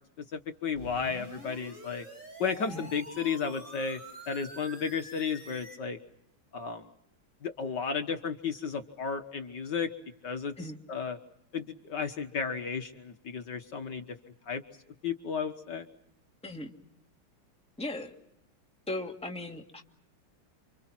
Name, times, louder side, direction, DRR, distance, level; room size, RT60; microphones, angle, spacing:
voice 1, 0.3-2.0 2.4-4.0 4.3-6.0 6.5-6.8 7.4-9.9 10.2-10.5 10.9-11.2 11.5-14.0 14.5-14.6 15.0-15.9, left 6 dB, 60° left, 6 dB, 1.8 m, -33 dB
sound 1, 0.8-5.8, right 1 dB, 35° right, 6.3 m, -47 dB
voice 2, 17.8-18.1 18.9-19.8, left 2 dB, 5° left, 2 dB, 1.9 m, -37 dB
29.0 x 26.0 x 6.0 m, 0.78 s
omnidirectional pair, 2.3 m